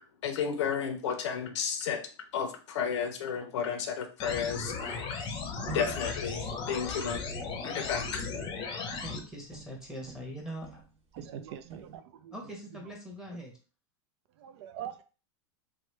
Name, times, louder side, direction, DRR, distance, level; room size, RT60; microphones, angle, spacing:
voice 1, 0.2-2.0 2.3-5.1 5.7-7.2 7.6-8.2, left 7 dB, 80° left, 0.6 m, -32 dB
sound 1, 4.2-9.2, left 4 dB, 30° left, 0.7 m, -36 dB
sound 2, 5.7-10.4 10.6-11.9, right 4 dB, 50° right, 1.2 m, -46 dB
voice 2, 9.0-10.8 12.3-13.5, equal, 5° right, 1.0 m, -42 dB
voice 3, 11.1-12.3 12.7-12.8 14.4-15.0, right 10 dB, 65° right, 0.4 m, -43 dB
3.0 x 2.1 x 3.2 m
hypercardioid pair, 115°, 15 cm